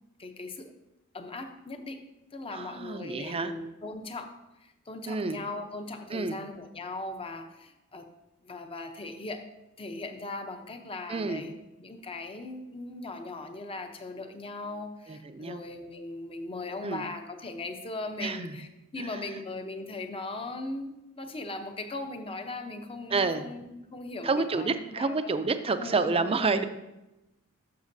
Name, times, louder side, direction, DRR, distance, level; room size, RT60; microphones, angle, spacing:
voice 1, 0.2-0.7 1.1-8.1 8.4-9.5 9.8-25.4 25.8-26.5, left 2 dB, 25° left, 6 dB, 0.7 m, -39 dB
voice 2, 2.5-3.5 5.1-5.4 6.1-6.4 11.1-11.4 15.1-15.6 16.8-17.0 18.2-18.5 19.0-19.1 23.1-23.4 24.2-26.6, right 4 dB, 25° right, 10 dB, 0.5 m, -29 dB
12.5 x 6.7 x 2.7 m, 0.96 s
head